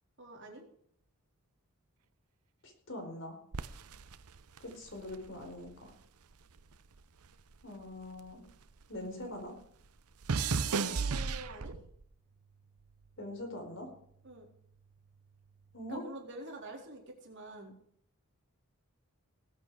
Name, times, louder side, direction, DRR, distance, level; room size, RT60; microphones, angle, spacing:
voice 1, 0.2-0.6 10.6-11.7 14.2-14.5 15.9-17.7, right 2 dB, 55° right, 0 dB, 4.0 m, -46 dB
voice 2, 2.6-3.4 4.6-5.9 7.6-8.4 8.9-9.5 13.2-13.9 15.7-16.0, left 1 dB, 55° left, 3 dB, 4.5 m, -43 dB
sound 1, 3.5-6.0 6.3-9.0 9.2-12.0 12.8-13.1, right 5 dB, 85° right, 0.8 m, -36 dB
20.0 x 8.6 x 4.9 m, 0.65 s
head